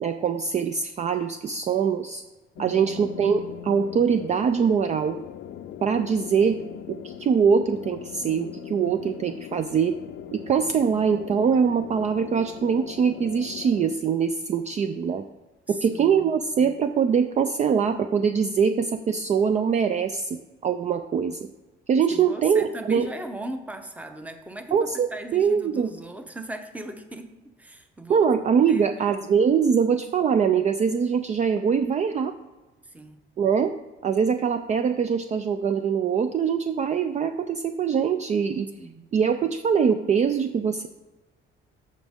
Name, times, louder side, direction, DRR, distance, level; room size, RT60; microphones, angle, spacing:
voice 1, 0.0-2.2 2.6-5.2 5.8-6.6 6.9-10.0 10.3-15.2 15.7-21.4 21.9-23.1 24.7-25.9 28.1-32.3 33.4-33.7 34.0-38.7 39.1-40.9, right 6 dB, 35° right, 8 dB, 0.4 m, -23 dB
sound 1, 2.6-14.0, left 10 dB, 65° left, 0.5 m, -40 dB
voice 2, 2.6-3.1 15.7-16.3 22.1-28.3 28.7-29.2 32.9-33.2 38.8-39.1, right 1 dB, 5° right, 7 dB, 0.7 m, -38 dB
13.5 x 5.1 x 3.6 m, 1.2 s
cardioid pair, 145°, 21 cm